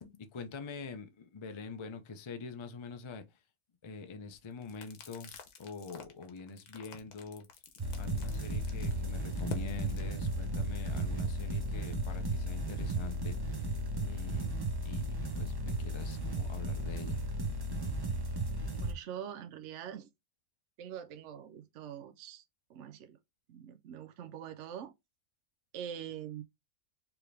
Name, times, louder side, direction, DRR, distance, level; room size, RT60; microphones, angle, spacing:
voice 1, 0.0-3.2 3.8-5.3 5.6-7.5 8.0-13.8 14.0-14.6 14.8-17.2, left 4 dB, 45° left, 0.3 m, -45 dB
sound 1, 4.3-10.0, left 8 dB, 80° left, 1.4 m, -49 dB
sound 2, 7.8-18.9, right 1 dB, 20° right, 0.7 m, -35 dB
voice 2, 18.8-20.1 20.8-22.4 22.7-23.2 23.5-24.9 25.7-26.4, right 9 dB, 65° right, 0.8 m, -44 dB
4.7 x 3.4 x 3.3 m
omnidirectional pair, 1.6 m